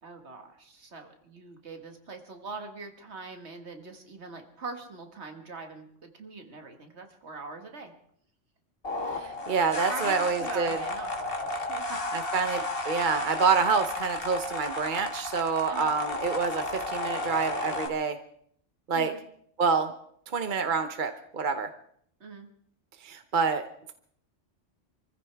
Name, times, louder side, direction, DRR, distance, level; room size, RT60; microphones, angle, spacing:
voice 1, 0.0-7.9 9.9-12.1 15.7-16.0 18.9-19.2 22.2-22.5, right 4 dB, 65° right, 5 dB, 2.0 m, -42 dB
sound 1, 8.8-17.9, left 2 dB, 50° left, 1.8 m, -33 dB
voice 2, 9.1-10.8 12.1-18.2 18.9-19.1 19.6-19.9 20.3-21.7 23.0-23.6, right 5 dB, 45° right, 8 dB, 0.9 m, -27 dB
26.0 x 15.0 x 3.4 m, 0.64 s
omnidirectional pair, 1.3 m